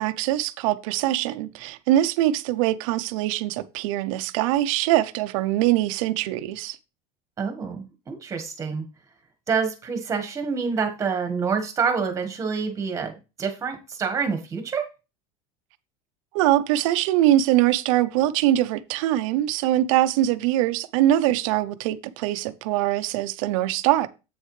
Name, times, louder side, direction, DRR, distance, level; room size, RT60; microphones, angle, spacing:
voice 1, 0.0-6.8 16.3-24.1, right 14 dB, 80° right, 0.6 m, -23 dB
voice 2, 7.4-8.8 9.5-13.1 13.4-14.8, right 5 dB, 20° right, 1.4 m, -27 dB
8.0 x 6.5 x 3.2 m
cardioid pair, 165°, 17 cm